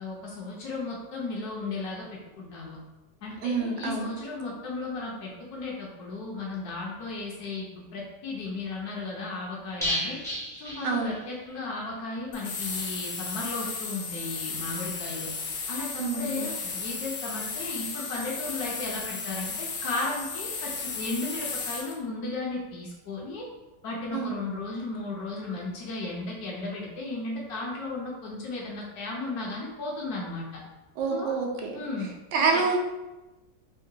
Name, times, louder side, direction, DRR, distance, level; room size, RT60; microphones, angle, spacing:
voice 1, 0.0-2.8 3.2-10.2 10.6-15.3 15.7-23.4 23.8-30.6 31.1-31.4 31.7-32.1 32.5-32.6, left 3 dB, 70° left, -2 dB, 1.0 m, -35 dB
voice 2, 3.4-4.1 10.8-11.1 16.0-16.5 24.1-24.3 31.0-31.8 32.3-32.8, right 4 dB, 85° right, 1 dB, 1.3 m, -27 dB
sound 1, 9.8-11.6 11.9-12.0 12.3-12.4, equal, 5° left, 0.4 m, -33 dB
sound 2, 12.3-21.9, left 4 dB, 85° left, 1.3 m, -35 dB
3.7 x 2.2 x 2.6 m, 1.1 s
omnidirectional pair, 1.9 m